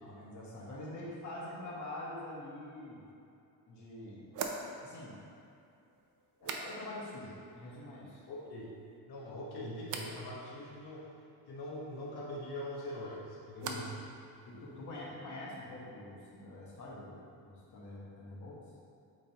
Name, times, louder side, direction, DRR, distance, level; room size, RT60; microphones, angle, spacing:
voice 1, 0.0-3.0 3.7-4.3 4.8-5.2 6.4-8.2 13.6-13.8 14.5-18.6, left 1 dB, 45° left, -5 dB, 1.4 m, -45 dB
sound 1, 3.1-3.2 4.3-7.2 7.4-8.0 8.4-9.0 9.8-10.2 12.6-14.1 14.3-14.9, right 5 dB, 50° right, 0.6 m, -45 dB
voice 2, 8.3-8.7 9.1-11.1 11.5-14.0, left 1 dB, 65° left, -4 dB, 1.3 m, -42 dB
8.7 x 3.9 x 2.9 m, 2.6 s
cardioid pair, 170°, 41 cm